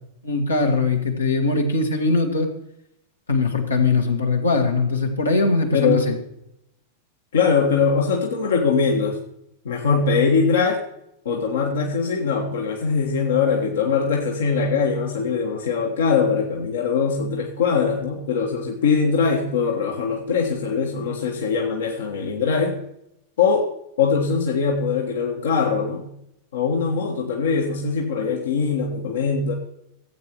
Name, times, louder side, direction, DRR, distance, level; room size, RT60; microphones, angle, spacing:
voice 1, 0.2-2.5 3.3-6.2, left 3 dB, 80° left, 1 dB, 1.9 m, -21 dB
voice 2, 5.7-6.1 7.3-9.2 9.6-10.8 11.2-22.8 23.4-23.7 24.0-26.1 26.5-29.5, left 5 dB, 65° left, 0 dB, 1.5 m, -22 dB
16.0 x 8.5 x 3.1 m, 0.80 s
figure-of-eight pair, 90°, 0 cm